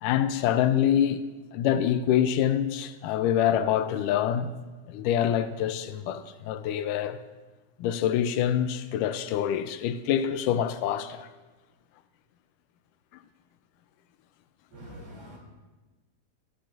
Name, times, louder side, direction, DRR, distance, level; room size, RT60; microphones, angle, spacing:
voice 1, 0.0-1.2 1.5-4.5 4.9-7.2 7.8-11.3, left 10 dB, 85° left, 2.2 m, -26 dB
voice 2, 14.7-15.4, equal, 45° right, 3.8 m, -44 dB
18.0 x 12.0 x 2.5 m
omnidirectional pair, 3.6 m